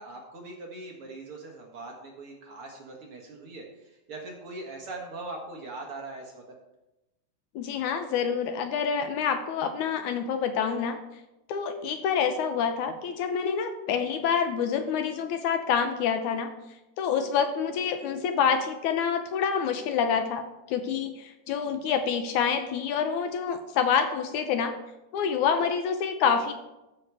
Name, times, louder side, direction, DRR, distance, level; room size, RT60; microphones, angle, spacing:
voice 1, 0.0-6.4, right 2 dB, 50° right, 0 dB, 2.0 m, -41 dB
voice 2, 7.6-11.0 11.5-16.5 17.0-24.8 25.1-26.5, left 7 dB, 75° left, 7 dB, 2.1 m, -27 dB
13.5 x 6.8 x 4.7 m, 0.96 s
omnidirectional pair, 3.7 m